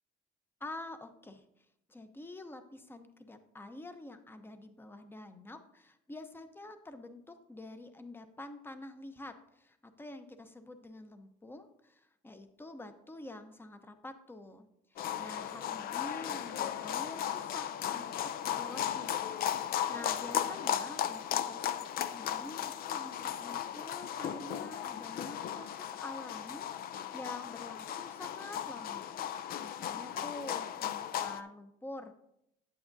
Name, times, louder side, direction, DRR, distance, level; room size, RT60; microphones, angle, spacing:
voice 1, 0.6-18.2 18.5-19.1 19.5-29.1 29.6-32.1, left 2 dB, 15° left, 9 dB, 0.7 m, -48 dB
sound 1, 15.0-31.4, left 10 dB, 60° left, 0.5 m, -36 dB
8.6 x 8.5 x 2.6 m, 0.79 s
cardioid pair, 110°, 17 cm